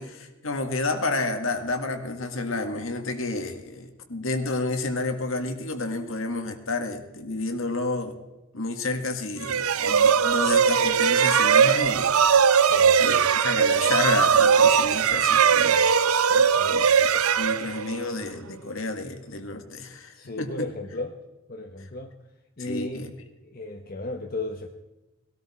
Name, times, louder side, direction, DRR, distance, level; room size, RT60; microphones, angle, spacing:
voice 1, 0.0-8.2 8.5-12.1 13.0-15.8 16.7-17.1 17.4-20.7 22.6-23.1, left 2 dB, 70° left, 7 dB, 1.8 m, -30 dB
sound 1, 9.4-18.2, right 7 dB, 90° right, 0.7 m, -20 dB
voice 2, 12.7-13.2 16.3-16.8 20.1-21.2 21.5-22.1 22.6-23.1 23.4-24.7, left 2 dB, 45° left, 4 dB, 0.9 m, -35 dB
19.5 x 13.0 x 4.2 m, 1.1 s
head